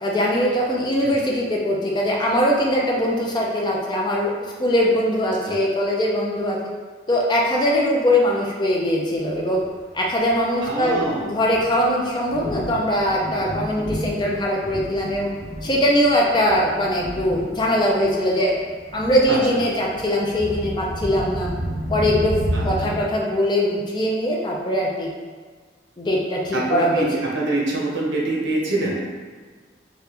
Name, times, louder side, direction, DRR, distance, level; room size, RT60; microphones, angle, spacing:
voice 1, 0.0-4.3 4.6-6.6 7.1-9.6 9.9-15.3 15.6-18.6 18.9-21.5 21.9-22.4 22.6-25.1 26.0-27.1, equal, 25° left, -3 dB, 0.5 m, -21 dB
Thunder, 9.4-23.0, equal, 5° left, 0.8 m, -32 dB
voice 2, 10.6-11.2 19.3-19.4 22.5-22.9 26.5-29.1, right 2 dB, 85° right, -3 dB, 0.8 m, -25 dB
3.3 x 2.5 x 2.9 m, 1.5 s
head